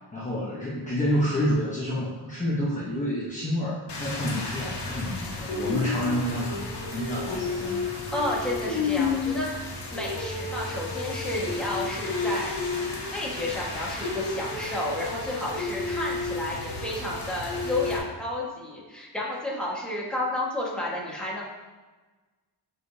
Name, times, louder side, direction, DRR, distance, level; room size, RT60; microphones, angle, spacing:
voice 1, 0.1-8.0, equal, 20° left, -6 dB, 1.1 m, -29 dB
Rain, 3.9-18.0, left 3 dB, 80° left, 1.6 m, -31 dB
voice 2, 8.1-12.5 13.1-21.4, left 1 dB, ahead, -5 dB, 1.6 m, -31 dB
8.9 x 5.1 x 2.8 m, 1.3 s
wide cardioid pair, 135°, 40 cm